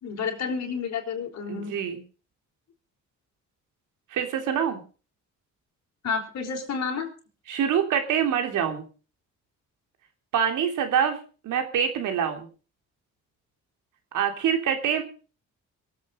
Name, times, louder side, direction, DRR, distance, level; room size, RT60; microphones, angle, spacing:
voice 1, 0.0-1.8 6.0-7.1, left 5 dB, 60° left, 2 dB, 4.8 m, -30 dB
voice 2, 1.5-2.0 4.1-4.8 7.5-8.8 10.3-11.2 11.4-12.5 14.1-15.0, right 8 dB, 85° right, 6 dB, 3.1 m, -25 dB
23.5 x 8.5 x 5.0 m, 0.37 s
cardioid pair, 90°, 30 cm